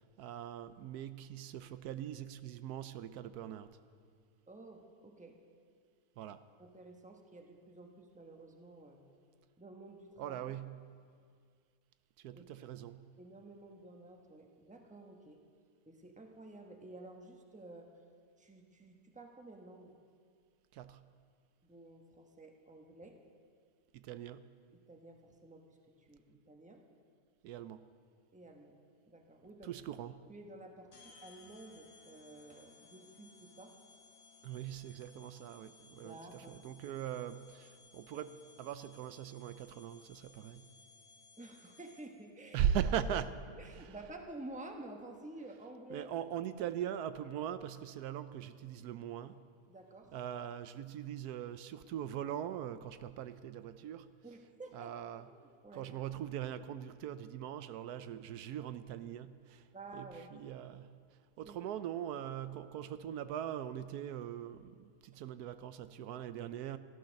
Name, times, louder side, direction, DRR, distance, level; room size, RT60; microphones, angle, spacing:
voice 1, 0.2-3.7 6.2-6.4 10.2-10.9 12.2-13.1 20.7-21.0 23.9-24.5 27.4-27.9 29.6-30.2 34.4-40.7 42.5-43.4 43.8-43.9 45.9-49.4 50.1-54.1 54.7-55.2 55.7-59.6 59.9-61.0 61.4-66.8, right 9 dB, 80° right, 12 dB, 1.1 m, -40 dB
voice 2, 4.5-5.4 6.6-9.0 9.6-10.4 12.3-12.5 13.2-15.4 15.9-17.9 18.4-20.0 21.6-23.2 24.7-25.6 26.0-26.8 28.3-28.8 29.1-29.7 30.3-33.7 35.9-36.6 41.4-42.7 43.5-46.1 46.6-46.7 49.7-50.1 54.2-55.3 55.6-55.9 59.7-60.3 61.4-61.6, right 2 dB, 5° right, 3 dB, 1.0 m, -51 dB
sound 1, 30.9-42.3, left 4 dB, 85° left, 1.8 m, -61 dB
14.5 x 12.5 x 6.4 m, 2.1 s
omnidirectional pair, 1.6 m